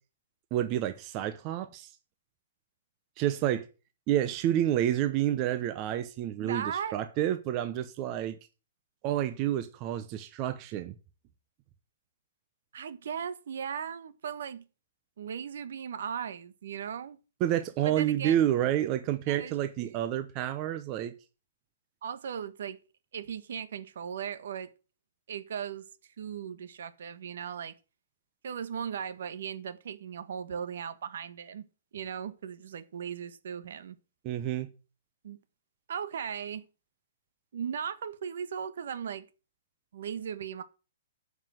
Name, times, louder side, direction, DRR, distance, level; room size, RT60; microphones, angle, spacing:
voice 1, 0.5-1.9 3.2-3.6 4.1-8.4 9.0-11.0 17.4-21.1 34.2-34.7, right 12 dB, 25° right, 0.8 m, -29 dB
voice 2, 6.4-7.0 12.7-14.6 15.2-17.2 17.8-18.4 19.3-19.5 19.8-20.0 22.0-22.8 23.1-24.7 25.3-25.9 26.2-27.7 28.4-31.7 31.9-34.0 35.2-35.4 35.9-36.6 37.5-39.2 39.9-40.6, right 8 dB, 65° right, 1.3 m, -37 dB
9.5 x 6.0 x 7.8 m
hypercardioid pair, 160°, 0 cm